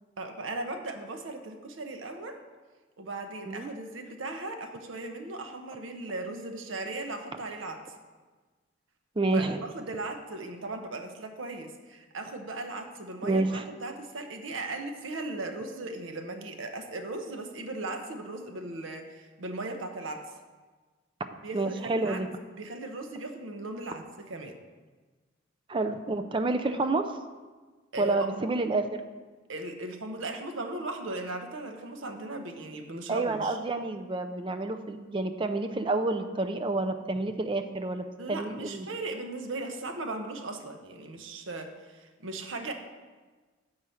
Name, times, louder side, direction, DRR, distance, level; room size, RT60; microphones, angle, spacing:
voice 1, 0.2-2.4 3.0-7.8 9.3-20.3 21.4-22.2 22.5-24.6 27.9-28.4 29.5-33.6 38.2-42.7, right 2 dB, 80° right, 5 dB, 0.8 m, -37 dB
voice 2, 9.2-9.6 13.2-13.6 21.5-22.3 25.7-27.1 28.0-29.0 33.1-38.9, right 2 dB, 25° right, 7 dB, 0.4 m, -29 dB
7.6 x 4.7 x 5.6 m, 1.4 s
head